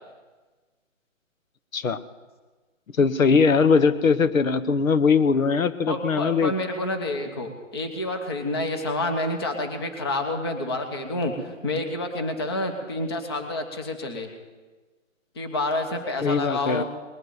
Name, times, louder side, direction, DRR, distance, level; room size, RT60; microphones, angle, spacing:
voice 1, 3.0-6.5 16.2-16.8, left 5 dB, 80° left, 12 dB, 1.0 m, -20 dB
voice 2, 5.9-11.3 11.6-14.3 15.4-16.8, left 2 dB, 20° left, 5 dB, 1.0 m, -28 dB
20.0 x 7.9 x 7.7 m, 1.3 s
hypercardioid pair, 165°, 40 cm